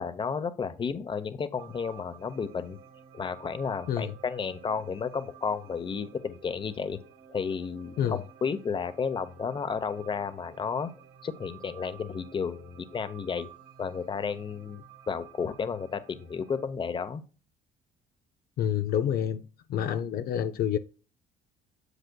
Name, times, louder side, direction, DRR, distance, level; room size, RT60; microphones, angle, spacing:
voice 1, 0.0-2.8 3.1-7.0 7.3-10.9 11.2-13.5 13.8-17.2, left 6 dB, 30° left, 0.8 m, -32 dB
sound 1, 1.6-16.6, right 9 dB, 85° right, 1.6 m, -53 dB
voice 2, 18.6-19.4 19.7-20.8, left 9 dB, 65° left, 0.6 m, -28 dB
8.1 x 7.3 x 2.3 m
cardioid pair, 110°, 17 cm